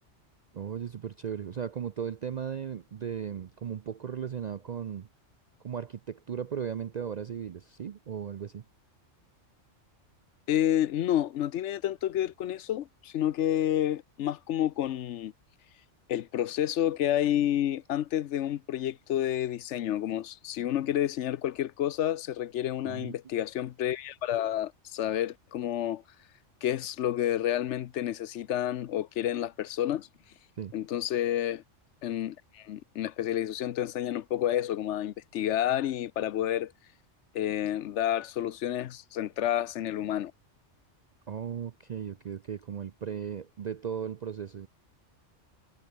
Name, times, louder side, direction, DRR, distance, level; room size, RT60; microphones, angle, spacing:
voice 1, 0.5-5.1 5.6-8.6 22.8-23.2 30.6-30.7 41.3-44.7, right 8 dB, 55° right, 0.4 m, -36 dB
voice 2, 10.5-15.3 16.1-26.0 26.6-30.1 30.7-31.6 32.0-36.7 37.3-40.3, left 11 dB, 70° left, 0.9 m, -29 dB
omnidirectional pair, 1.3 m